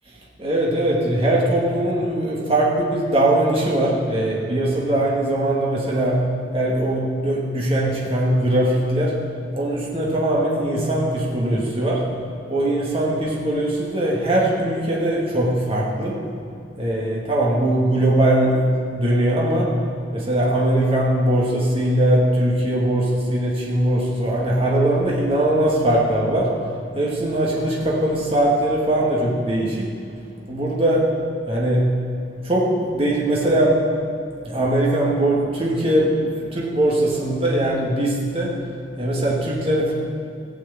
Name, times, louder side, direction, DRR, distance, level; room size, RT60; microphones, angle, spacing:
voice 1, 0.4-6.3 6.5-9.2 9.5-12.1 12.5-16.3 16.8-19.8 20.1-26.6 26.9-29.9 30.5-31.1 31.5-31.9 32.4-33.9 34.4-38.6 39.0-39.9, right 1 dB, 30° right, -4 dB, 1.9 m, -20 dB
15.0 x 5.0 x 8.3 m, 2.4 s
head